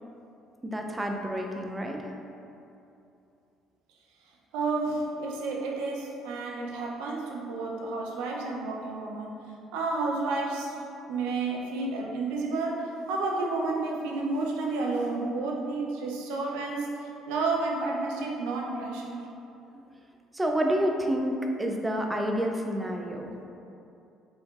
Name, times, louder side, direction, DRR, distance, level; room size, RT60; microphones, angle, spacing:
voice 1, 0.6-2.1 20.3-23.4, equal, 15° right, 2 dB, 0.4 m, -29 dB
voice 2, 4.5-9.4 9.7-19.3, right 3 dB, 80° right, -1 dB, 0.5 m, -31 dB
4.1 x 3.1 x 2.4 m, 2.7 s
hypercardioid pair, 65°, 0 cm